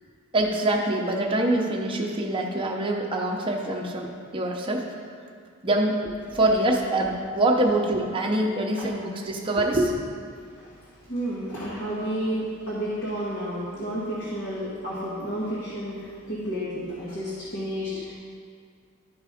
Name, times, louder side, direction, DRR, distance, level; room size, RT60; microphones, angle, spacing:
voice 1, 0.3-4.9 5.6-10.0 17.9-18.0, right 1 dB, 25° right, -1 dB, 0.8 m, -25 dB
voice 2, 10.4-18.1, equal, 55° left, -7 dB, 1.4 m, -31 dB
12.0 x 4.0 x 5.0 m, 2.1 s
head